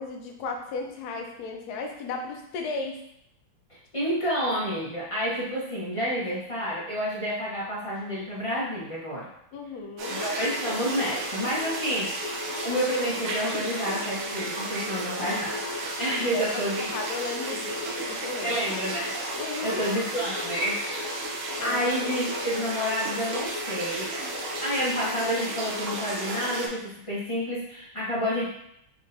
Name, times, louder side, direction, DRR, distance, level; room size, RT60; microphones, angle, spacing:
voice 1, 0.0-3.0 9.5-10.2 11.9-12.0 16.3-16.4 16.9-18.6 19.4-19.8 21.6-21.8, left 4 dB, 65° left, 2 dB, 1.0 m, -35 dB
voice 2, 3.9-9.3 10.1-12.4 12.6-15.6 16.0-17.0 18.4-19.1 19.6-20.8 21.6-24.1 24.6-28.5, equal, 30° left, -8 dB, 0.5 m, -29 dB
sound 1, 10.0-26.7, right 1 dB, 75° right, 1.5 m, -32 dB
4.5 x 3.7 x 2.6 m, 0.76 s
omnidirectional pair, 2.4 m